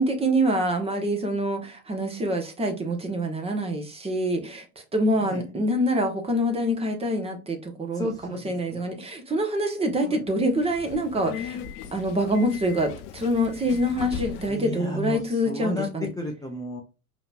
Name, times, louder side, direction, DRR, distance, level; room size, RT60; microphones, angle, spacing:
voice 1, 0.0-4.6 4.9-8.1 8.4-11.6 11.9-16.1, equal, 15° right, 1.1 m, -25 dB
voice 2, 7.9-8.8 10.0-10.2 14.2-15.9 16.2-16.8, left 1 dB, 10° left, 0.8 m, -34 dB
Subway metro underground, 10.5-14.7, left 9 dB, 30° left, 0.5 m, -38 dB
4.9 x 3.1 x 2.5 m
hypercardioid pair, 105°, 45 cm